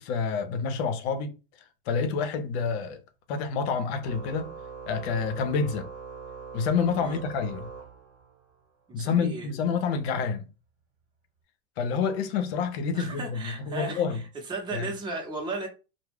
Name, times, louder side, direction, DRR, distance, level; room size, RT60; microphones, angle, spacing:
voice 1, 0.0-1.3 1.9-3.0 3.3-4.5 4.9-5.9 6.5-7.7 8.9-10.5 11.8-14.2 14.7-14.9, left 5 dB, 70° left, 0.6 m, -28 dB
Organ, 4.0-8.5, right 5 dB, 40° right, 1.0 m, -42 dB
voice 2, 8.9-9.5 12.9-14.0 14.5-15.7, right 3 dB, 15° right, 0.7 m, -35 dB
2.3 x 2.0 x 3.4 m
supercardioid pair, 110°, 33 cm